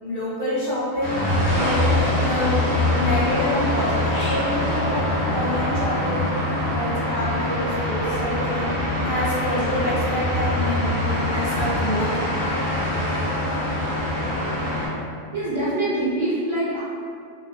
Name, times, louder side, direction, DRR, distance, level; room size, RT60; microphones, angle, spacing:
voice 1, 0.0-2.6 2.9-5.0 5.3-8.7 8.9-12.1, left 1 dB, 50° left, -9 dB, 0.6 m, -27 dB
sound 1, 1.0-14.9, left 1 dB, 15° left, 0.8 m, -24 dB
sound 2, 1.8-6.9, equal, 70° left, 1.0 m, -42 dB
Wind instrument woodwind instrument, 3.5-8.2, equal, 85° right, 1.0 m, -40 dB
voice 2, 15.3-16.8, right 1 dB, 50° right, -10 dB, 0.3 m, -24 dB
2.4 x 2.2 x 2.6 m, 2.3 s
omnidirectional pair, 1.3 m